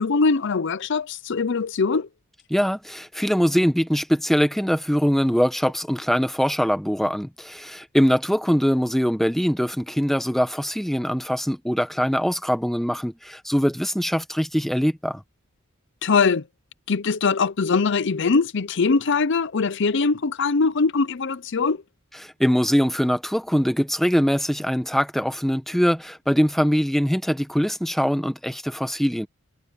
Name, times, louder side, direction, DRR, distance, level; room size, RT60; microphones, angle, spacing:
voice 1, 0.0-2.1 16.0-16.4 16.9-21.8, left 4 dB, 60° left, 0.6 m, -22 dB
voice 2, 2.5-15.2 22.2-29.3, equal, ahead, 1.2 m, -22 dB
head